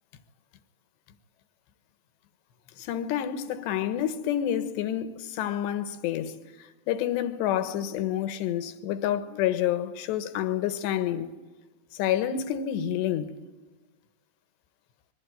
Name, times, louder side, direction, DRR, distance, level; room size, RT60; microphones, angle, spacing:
voice 1, 2.8-6.4 6.9-11.3 12.0-13.4, left 11 dB, 70° left, 3.2 m, -28 dB
26.0 x 22.5 x 9.3 m
omnidirectional pair, 5.9 m